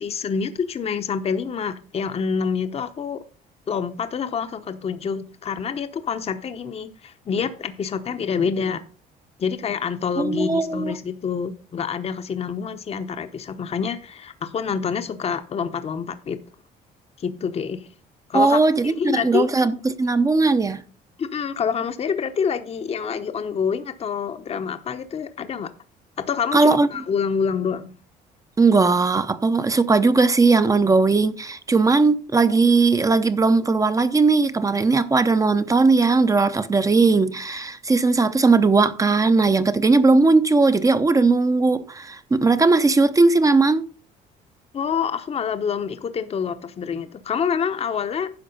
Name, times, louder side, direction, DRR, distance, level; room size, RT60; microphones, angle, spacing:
voice 1, 0.0-3.2 3.7-8.8 9.4-16.4 17.2-17.9 18.3-19.6 21.2-25.7 26.2-27.9 44.7-48.4, left 6 dB, 35° left, 0.9 m, -27 dB
voice 2, 10.2-11.0 18.3-20.8 26.5-26.9 28.6-43.8, right 3 dB, 20° right, 0.7 m, -18 dB
10.5 x 6.0 x 5.3 m
cardioid pair, 110°, 17 cm